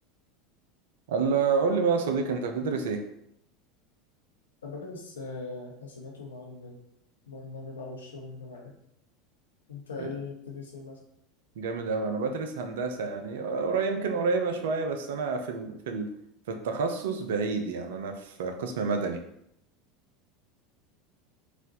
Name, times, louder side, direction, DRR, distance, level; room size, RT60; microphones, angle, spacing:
voice 1, 1.1-3.0 10.0-10.1 11.6-16.1 16.5-19.2, right 4 dB, 70° right, 5 dB, 0.5 m, -29 dB
voice 2, 4.6-6.8 7.3-8.8 9.7-11.0, left 3 dB, 80° left, -1 dB, 1.0 m, -40 dB
4.1 x 2.5 x 4.0 m, 0.75 s
figure-of-eight pair, 80°, 0 cm